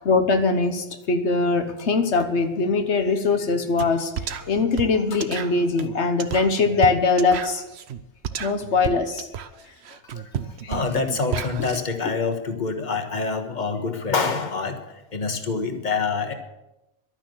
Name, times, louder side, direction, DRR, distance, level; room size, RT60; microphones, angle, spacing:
voice 1, 0.0-7.6 8.4-9.3 10.6-10.7 11.6-11.7, left 4 dB, 85° left, 7 dB, 1.4 m, -22 dB
sound 1, 3.8-3.9 4.2-11.8, right 8 dB, 75° right, 1.0 m, -32 dB
voice 2, 10.7-16.3, left 4 dB, 45° left, 6 dB, 1.5 m, -26 dB
12.0 x 9.7 x 7.9 m, 0.95 s
omnidirectional pair, 1.1 m